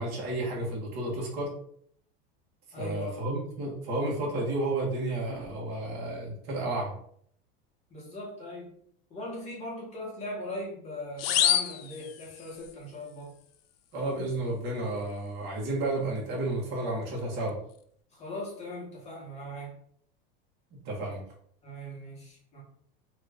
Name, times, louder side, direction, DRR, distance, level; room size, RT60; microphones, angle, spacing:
voice 1, 0.0-1.5 2.8-6.9 13.9-17.5 20.8-21.2, right 2 dB, 35° right, -3 dB, 1.1 m, -31 dB
voice 2, 2.7-3.1 7.9-8.7 9.1-13.3 18.1-19.7 21.6-22.6, left 1 dB, 20° left, -4 dB, 1.0 m, -39 dB
sound 1, 11.2-12.7, left 10 dB, 90° left, 0.5 m, -27 dB
2.9 x 2.5 x 3.4 m, 0.65 s
supercardioid pair, 155°, 29 cm